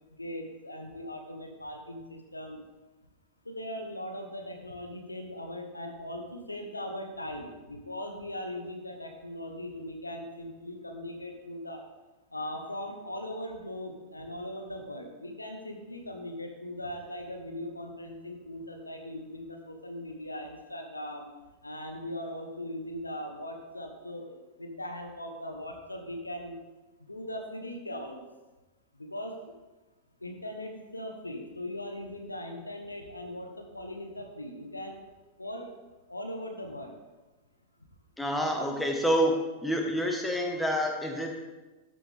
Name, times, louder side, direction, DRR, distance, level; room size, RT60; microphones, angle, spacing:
voice 1, 0.2-2.6 3.4-11.8 12.3-21.3 21.6-26.5 27.1-28.2 29.0-29.4 30.2-35.0 35.4-35.8 36.1-36.9, left 1 dB, 85° left, 4 dB, 1.1 m, -39 dB
voice 2, 38.2-39.3 39.6-41.4, equal, 5° left, 1 dB, 1.4 m, -27 dB
12.5 x 6.7 x 3.5 m, 1.1 s
figure-of-eight pair, 90°, 0 cm